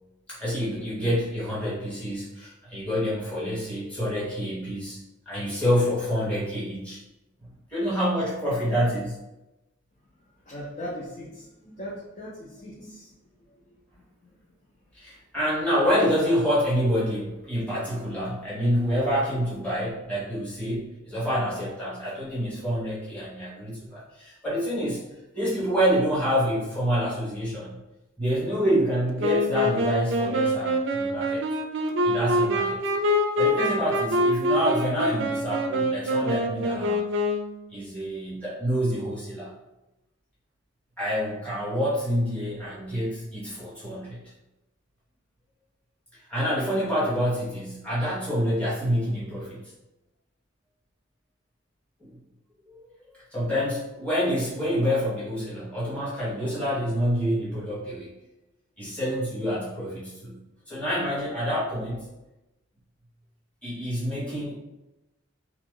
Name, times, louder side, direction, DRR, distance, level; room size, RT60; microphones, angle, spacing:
voice 1, 0.3-5.0 5.3-7.0 7.7-9.2 14.9-25.0 25.3-27.8 28.2-31.4 32.0-32.8 33.4-37.0 37.7-39.5 41.0-44.2 46.3-49.6 52.0-52.1 52.7-52.8 53.3-58.1 58.8-60.3 60.7-62.1 63.6-64.5, equal, 5° left, -8 dB, 1.0 m, -27 dB
voice 2, 10.2-14.4, equal, 40° left, -5 dB, 0.6 m, -40 dB
Wind instrument woodwind instrument, 29.2-37.6, equal, 65° right, 0.4 m, -25 dB
2.9 x 2.4 x 3.6 m, 0.96 s
head